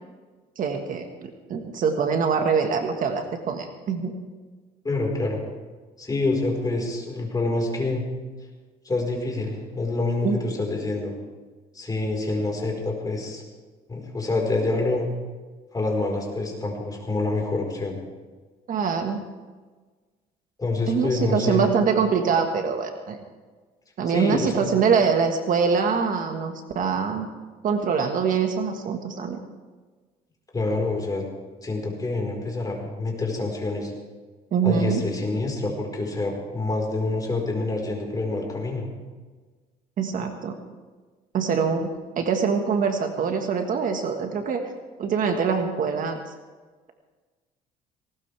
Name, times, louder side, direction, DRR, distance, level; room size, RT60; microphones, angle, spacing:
voice 1, 0.6-4.1 10.2-10.4 18.7-19.2 20.9-23.2 24.0-27.3 27.6-29.4 34.5-35.0 40.0-40.6 41.3-41.9 42.1-44.6 45.0-46.2, right 6 dB, 55° right, 5 dB, 1.6 m, -24 dB
voice 2, 4.8-5.4 6.0-8.0 8.8-11.1 11.7-13.4 13.9-15.1 15.7-18.0 20.6-21.7 24.1-24.7 30.5-31.2 31.6-33.9 34.6-38.9, left 2 dB, 20° left, 0 dB, 4.6 m, -27 dB
19.0 x 18.5 x 3.5 m, 1.4 s
cardioid pair, 110°, 17 cm